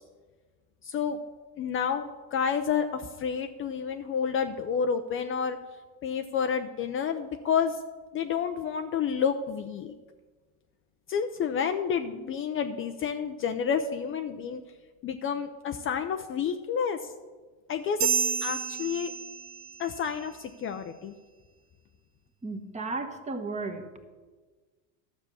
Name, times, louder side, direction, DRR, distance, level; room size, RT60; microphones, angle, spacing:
voice 1, 0.8-1.2 1.6-5.6 6.0-7.8 8.1-9.9 11.1-14.6 15.0-17.1 17.7-18.1 18.4-19.1 19.8-21.2, left 7 dB, 30° left, 7 dB, 0.6 m, -29 dB
sound 1, 18.0-19.9, right 7 dB, 55° right, 1.0 m, -30 dB
voice 2, 22.4-23.8, right 3 dB, 15° right, 6 dB, 1.3 m, -34 dB
12.5 x 6.9 x 7.0 m, 1.4 s
supercardioid pair, 115°, 42 cm